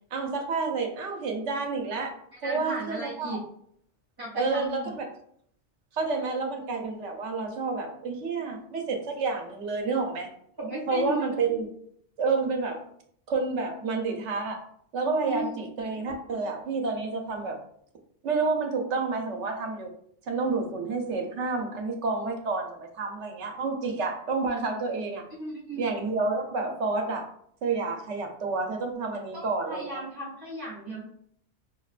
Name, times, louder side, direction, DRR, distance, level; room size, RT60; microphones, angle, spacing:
voice 1, 0.1-2.2 2.4-3.4 4.3-5.1 5.9-10.3 10.9-11.6 12.2-12.8 13.3-14.6 14.9-17.6 18.2-19.9 20.3-25.2 25.8-27.3 27.6-30.0, right 4 dB, 85° right, 3 dB, 1.0 m, -29 dB
voice 2, 2.4-3.4 4.2-4.9 10.6-11.2 15.3-15.5 25.4-25.9 29.3-31.0, right 1 dB, 30° right, -7 dB, 0.5 m, -35 dB
5.4 x 2.2 x 2.4 m, 0.68 s
omnidirectional pair, 1.2 m